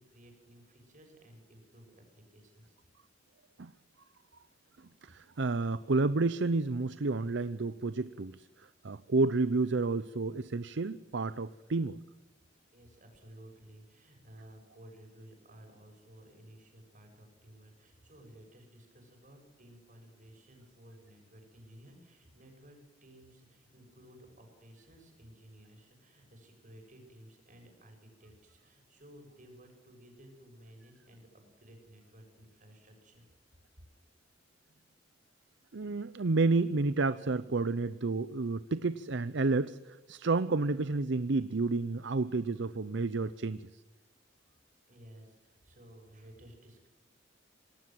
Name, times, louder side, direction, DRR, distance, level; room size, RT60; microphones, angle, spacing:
voice 1, 0.0-2.8 12.5-33.3 44.9-46.9, equal, 45° right, 3 dB, 7.4 m, -56 dB
voice 2, 5.0-8.5 8.8-12.0 35.7-43.7, right 3 dB, 65° right, 15 dB, 0.7 m, -30 dB
27.0 x 19.0 x 7.8 m, 1.1 s
head